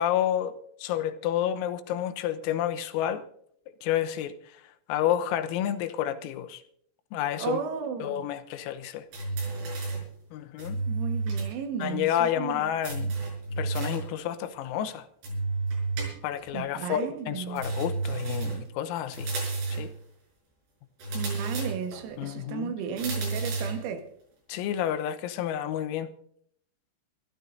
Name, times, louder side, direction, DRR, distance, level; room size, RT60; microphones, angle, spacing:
voice 1, 0.0-3.2 3.8-6.6 7.1-7.6 8.0-9.1 10.3-10.8 11.8-13.2 13.6-15.1 16.2-19.3 19.7-19.9 22.2-22.8 24.5-26.1, left 10 dB, 85° left, 3.7 m, -30 dB
voice 2, 7.4-8.2 10.9-12.7 16.5-17.6 21.1-24.1, right 7 dB, 90° right, 4.3 m, -34 dB
sound 1, 9.1-10.1 10.6-11.6 11.8-11.9 12.8-14.1 15.2-16.5 17.6-18.7 19.1-19.9 21.0-22.0 23.0-23.8, right 3 dB, 55° right, 7.2 m, -31 dB
25.0 x 13.5 x 2.7 m
omnidirectional pair, 6.0 m